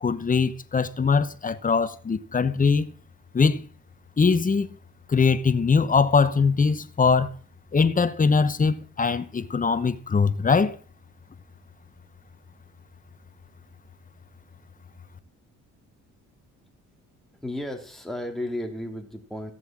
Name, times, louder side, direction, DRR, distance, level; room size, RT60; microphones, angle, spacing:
voice 1, 0.0-2.9 3.3-3.6 4.2-4.7 5.1-7.3 7.7-10.7, left 5 dB, 25° left, 1.1 m, -22 dB
voice 2, 17.4-19.5, left 1 dB, ahead, 3.3 m, -33 dB
15.0 x 7.8 x 7.5 m
cardioid pair, 90°, 30 cm